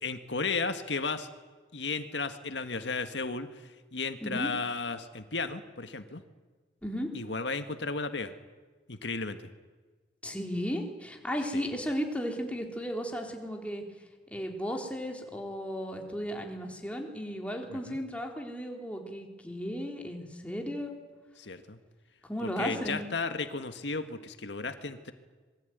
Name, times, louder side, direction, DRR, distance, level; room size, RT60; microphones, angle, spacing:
voice 1, 0.0-1.3 1.7-3.5 3.9-6.2 7.1-8.3 8.9-9.4 11.5-11.6 17.7-18.0 21.4-21.8 22.4-25.1, left 4 dB, 85° left, 8 dB, 1.8 m, -34 dB
voice 2, 4.2-4.5 6.8-7.1 10.2-13.8 14.3-20.9 22.2-23.0, equal, 10° left, 2 dB, 3.8 m, -35 dB
26.5 x 22.5 x 9.4 m, 1.4 s
head